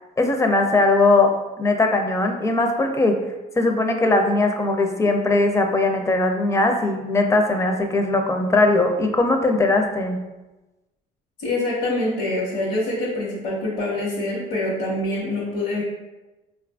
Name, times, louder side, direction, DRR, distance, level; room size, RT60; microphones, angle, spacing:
voice 1, 0.2-1.3 1.6-3.2 3.6-10.2, left 2 dB, 15° left, 4 dB, 0.4 m, -19 dB
voice 2, 11.4-15.8, left 1 dB, 75° left, -9 dB, 1.1 m, -25 dB
4.6 x 2.5 x 2.2 m, 1.1 s
cardioid pair, 110°, 17 cm